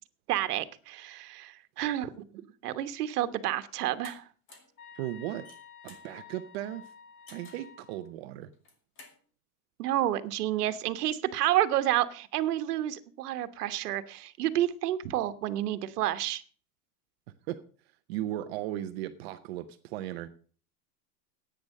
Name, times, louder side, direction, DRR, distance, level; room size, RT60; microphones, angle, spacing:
voice 1, 0.3-4.3 9.8-16.4, right 13 dB, 80° right, 1.3 m, -30 dB
sound 1, 4.0-4.2 4.5-4.8 5.3-6.1 7.3-7.7 8.5-9.2, left 3 dB, 25° left, 2.7 m, -52 dB
sound 2, 4.8-8.0, left 6 dB, 80° left, 2.7 m, -51 dB
voice 2, 4.9-5.5 5.8-6.9 7.3-8.5 17.5-17.6 18.1-20.3, right 13 dB, 40° right, 0.7 m, -36 dB
10.5 x 8.9 x 6.4 m
supercardioid pair, 170°, 46 cm